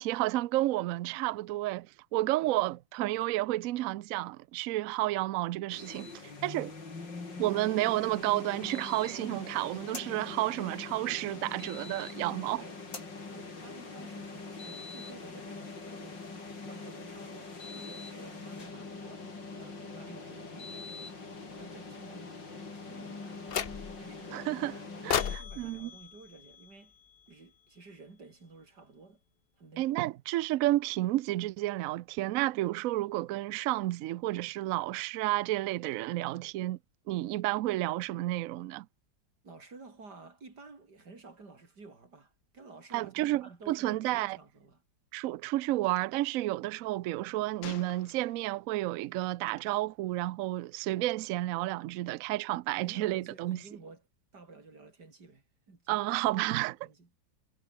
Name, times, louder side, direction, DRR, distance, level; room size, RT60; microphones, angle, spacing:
voice 1, 0.0-6.1 6.4-6.7 7.4-12.6 24.3-24.7 25.0-25.9 29.8-36.8 37.1-38.9 42.9-44.4 45.1-53.6 55.9-56.8, right 17 dB, 85° right, 0.7 m, -31 dB
sound 1, 5.7-25.4, left 3 dB, 70° left, 4.9 m, -43 dB
voice 2, 12.3-12.8 13.3-19.3 19.5-21.2 21.5-22.4 22.8-24.5 25.0-26.9 27.3-29.2 29.6-29.9 39.4-44.8 52.8-54.0 54.3-55.8 56.6-57.1, right 3 dB, 60° right, 4.6 m, -52 dB
sound 2, 23.5-24.1 25.1-27.3, left 8 dB, 50° left, 0.7 m, -35 dB
Gunshot gunfire, 45.8-46.0 47.6-48.6 49.5-49.7, left 9 dB, 85° left, 2.0 m, -48 dB
omnidirectional pair, 2.0 m